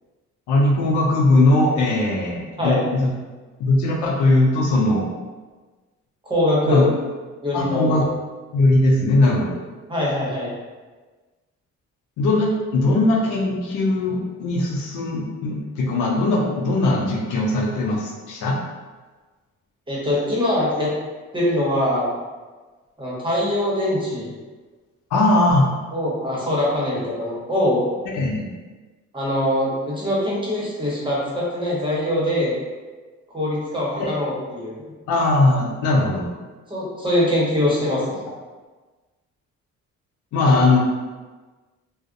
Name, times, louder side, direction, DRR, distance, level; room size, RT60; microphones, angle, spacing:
voice 1, 0.5-3.1 3.6-5.1 6.6-6.9 7.5-8.1 8.5-9.6 12.2-18.6 25.1-25.7 28.1-28.5 34.0-34.1 35.1-36.2 40.3-40.8, left 2 dB, 80° left, -1 dB, 0.5 m, -19 dB
voice 2, 2.6-2.9 6.2-6.9 7.4-8.1 9.9-10.5 19.9-20.9 21.3-22.1 23.0-24.3 25.9-27.8 29.1-32.5 33.3-34.8 36.7-38.3, left 1 dB, 15° right, -6 dB, 0.9 m, -22 dB
2.4 x 2.0 x 2.5 m, 1.3 s
cardioid pair, 90°, 30 cm